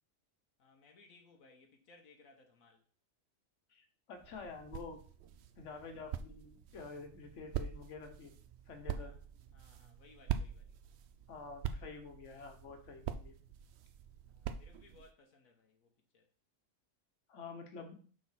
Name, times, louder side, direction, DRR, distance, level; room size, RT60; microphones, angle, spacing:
voice 1, 0.6-2.8 8.9-9.2 9.5-10.8 14.3-16.3, left 3 dB, 90° left, 1.5 m, -63 dB
voice 2, 3.7-5.0 5.6-8.3 8.7-9.1 11.3-13.4 17.3-17.9, left 4 dB, 65° left, 1.5 m, -48 dB
sound 1, 4.2-15.1, right 8 dB, 65° right, 0.7 m, -44 dB
6.6 x 3.9 x 5.7 m
omnidirectional pair, 1.4 m